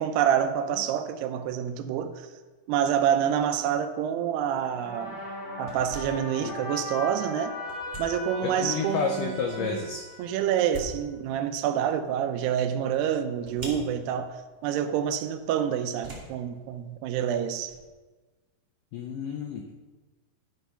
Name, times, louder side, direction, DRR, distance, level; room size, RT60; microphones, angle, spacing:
voice 1, 0.0-2.3 2.7-5.2 5.6-7.6 8.0-9.8 10.2-14.4 14.6-17.7, right 9 dB, 85° right, 7 dB, 2.7 m, -27 dB
sound 1, 4.3-17.9, right 1 dB, 15° right, 1.4 m, -48 dB
sound 2, 4.5-10.9, left 2 dB, 15° left, 2.3 m, -38 dB
voice 2, 8.4-10.0 18.9-19.7, left 5 dB, 90° left, 3 dB, 1.9 m, -30 dB
12.0 x 5.9 x 5.6 m, 1.3 s
omnidirectional pair, 4.8 m